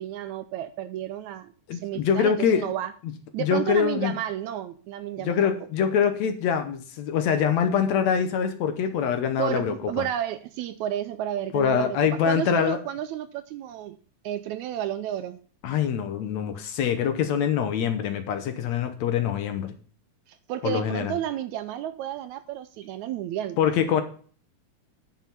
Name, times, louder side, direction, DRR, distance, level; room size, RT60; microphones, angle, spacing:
voice 1, 0.0-2.9 3.3-5.5 9.4-14.0 14.2-15.4 20.3-23.6, right 11 dB, 80° right, 11 dB, 1.8 m, -32 dB
voice 2, 1.7-2.7 3.4-4.1 5.2-9.7 11.5-12.8 15.6-19.7 20.6-21.1 23.6-24.0, left 7 dB, 70° left, 8 dB, 2.0 m, -24 dB
9.5 x 5.7 x 5.6 m, 0.44 s
omnidirectional pair, 3.7 m